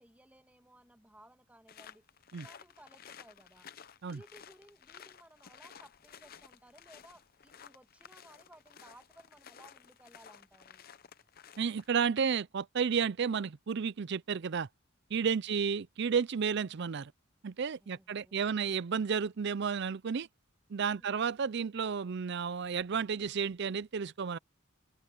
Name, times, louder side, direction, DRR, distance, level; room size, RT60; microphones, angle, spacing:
voice 1, 0.0-2.0 2.4-3.7 4.0-10.9 17.8-18.6 20.9-21.2, right 1 dB, 5° right, 1.8 m, -59 dB
sound 1, 1.7-12.0, left 8 dB, 45° left, 0.7 m, -54 dB
voice 2, 11.6-14.7 15.1-17.1 17.4-20.3 20.7-24.4, right 6 dB, 55° right, 0.5 m, -32 dB
head